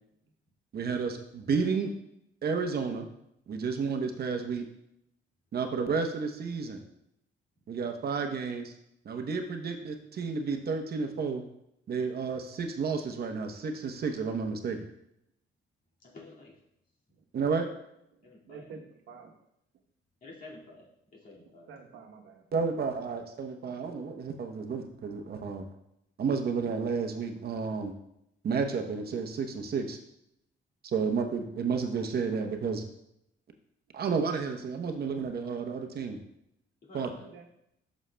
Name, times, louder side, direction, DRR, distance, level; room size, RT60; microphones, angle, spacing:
voice 1, 0.7-1.9 2.4-3.1 3.5-4.6 5.5-6.8 7.7-8.7 9.0-11.4 11.9-14.8 17.3-17.7 22.5-25.6 26.2-27.9 28.4-30.0 30.8-32.8 33.9-36.2 36.9-37.1, right 5 dB, 50° right, 5 dB, 0.8 m, -31 dB
voice 2, 16.0-16.6 18.2-18.8 20.2-21.7 36.9-37.5, left 2 dB, 45° left, -3 dB, 2.1 m, -50 dB
voice 3, 18.5-19.3 21.7-22.4 24.1-24.2 24.6-24.7 37.2-37.5, right 5 dB, 80° right, 4 dB, 1.0 m, -48 dB
11.0 x 6.2 x 2.2 m, 0.79 s
cardioid pair, 125°, 20 cm